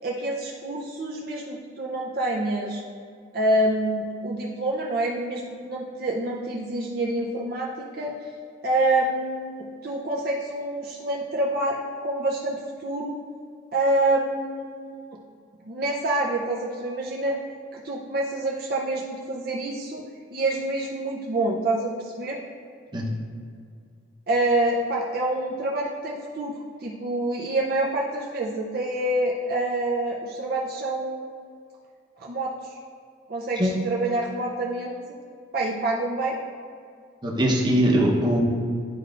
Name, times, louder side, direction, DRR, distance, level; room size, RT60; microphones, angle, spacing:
voice 1, 0.0-2.8 3.3-8.2 8.6-9.6 9.8-13.2 13.7-15.0 15.7-17.4 17.7-20.0 20.3-22.4 24.3-26.5 26.8-31.4 32.2-32.8 33.3-35.2 35.5-36.4, right 1 dB, 50° right, -3 dB, 0.5 m, -27 dB
voice 2, 37.2-38.4, equal, 20° right, -2 dB, 0.8 m, -21 dB
11.0 x 4.4 x 2.5 m, 2.3 s
head